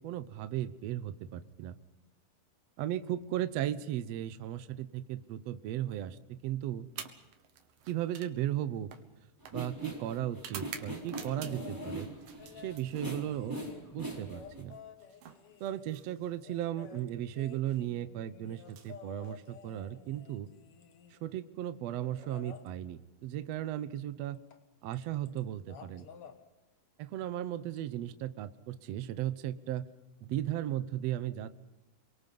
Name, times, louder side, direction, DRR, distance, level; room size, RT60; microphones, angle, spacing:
voice 1, 0.0-1.8 2.8-6.9 7.9-8.9 9.5-12.1 12.6-13.6 13.9-14.8 15.6-20.5 21.1-24.4 24.8-26.1 27.0-29.9 30.2-31.5, right 12 dB, 85° right, 11 dB, 1.4 m, -36 dB
sound 1, 6.9-11.8 12.2-13.4 14.6-16.5 17.5-17.8 18.6-19.8, right 8 dB, 65° right, 2.9 m, -49 dB
sound 2, 9.4-14.6, right 1 dB, 5° right, 3.7 m, -41 dB
sound 3, 11.1-12.0 12.4-15.9 16.4-21.3 22.2-22.7 24.5-24.6 24.9-25.4 25.6-26.4 27.8-27.9, left 7 dB, 55° left, 1.6 m, -52 dB
29.5 x 23.5 x 5.4 m, 1.0 s
omnidirectional pair, 4.3 m